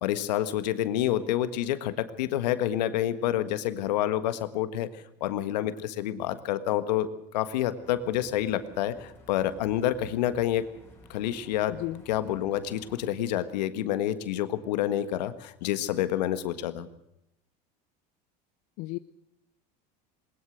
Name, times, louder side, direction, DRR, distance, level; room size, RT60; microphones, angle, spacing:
voice 1, 0.0-7.1 7.3-10.7 11.1-11.8 12.1-16.9, left 12 dB, 85° left, 11 dB, 1.6 m, -28 dB
sound 1, 7.8-13.1, left 1 dB, 10° left, 6.2 m, -54 dB
voice 2, 11.7-12.0 18.8-19.0, left 19 dB, 65° left, 12 dB, 0.7 m, -33 dB
20.5 x 20.0 x 6.4 m, 0.81 s
supercardioid pair, 100°, 21 cm